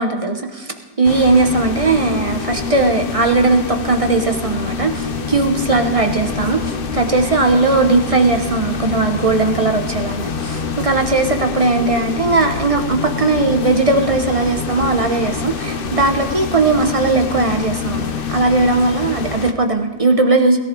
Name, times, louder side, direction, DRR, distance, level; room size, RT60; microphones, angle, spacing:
voice 1, 0.0-20.6, right 3 dB, 35° right, 5 dB, 0.5 m, -18 dB
sound 1, 1.0-19.5, left 5 dB, 90° left, 0.4 m, -26 dB
20.5 x 13.5 x 3.8 m, 1.4 s
omnidirectional pair, 2.0 m